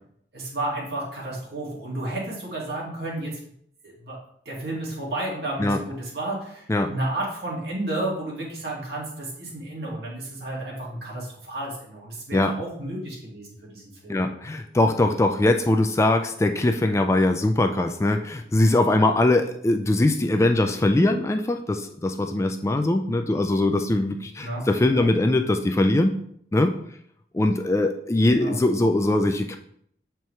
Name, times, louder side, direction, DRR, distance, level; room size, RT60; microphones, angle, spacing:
voice 1, 0.3-3.4 3.8-4.2 4.5-14.1 24.4-24.7 24.9-25.1 28.3-28.6, right 1 dB, 65° right, -4 dB, 2.1 m, -32 dB
voice 2, 14.1-26.1 26.5-26.7 27.3-29.6, left 2 dB, 15° left, 6 dB, 0.3 m, -21 dB
6.9 x 4.5 x 3.2 m, 0.67 s
head